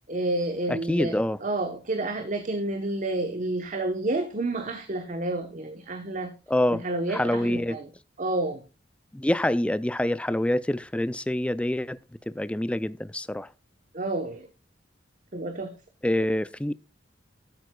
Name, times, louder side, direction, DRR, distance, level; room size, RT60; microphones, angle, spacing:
voice 1, 0.1-6.3 6.7-7.9 8.2-8.6 13.9-14.5 15.3-15.7, right 2 dB, 45° right, 1.0 m, -30 dB
voice 2, 0.7-1.4 6.5-6.8 7.1-7.8 9.1-12.0 12.3-13.5 16.0-16.7, left 1 dB, 5° left, 0.3 m, -26 dB
12.5 x 9.0 x 2.3 m
head